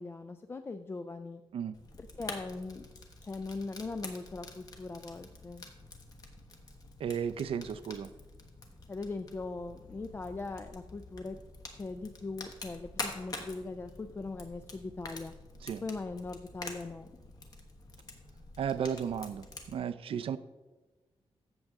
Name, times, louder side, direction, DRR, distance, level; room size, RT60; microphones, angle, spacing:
voice 1, 0.0-1.4 2.0-2.8 3.2-5.6 8.9-11.4 11.7-15.3 15.8-17.1, left 3 dB, 25° left, 8 dB, 0.3 m, -40 dB
Fire, 1.7-19.7, left 2 dB, 40° left, 1.3 m, -47 dB
voice 2, 7.0-8.1 15.6-15.8 18.6-20.4, right 7 dB, 70° right, 12 dB, 0.5 m, -34 dB
15.0 x 6.6 x 3.6 m, 1.2 s
wide cardioid pair, 175°, 10 cm